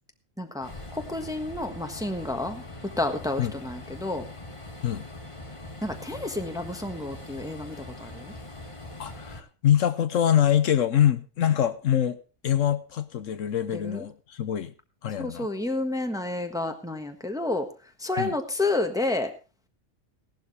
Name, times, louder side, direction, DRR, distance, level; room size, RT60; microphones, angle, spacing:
voice 1, 0.4-2.6 3.0-4.2 5.8-8.3 13.7-14.0 15.2-17.7 18.0-19.3, left 2 dB, 5° right, 5 dB, 1.3 m, -30 dB
Train, 0.6-9.4, left 2 dB, 25° left, 1.4 m, -42 dB
voice 2, 9.0-14.7 15.0-15.5 18.2-18.3, left 10 dB, 70° left, 12 dB, 1.1 m, -24 dB
17.5 x 12.0 x 3.2 m, 0.33 s
omnidirectional pair, 1.4 m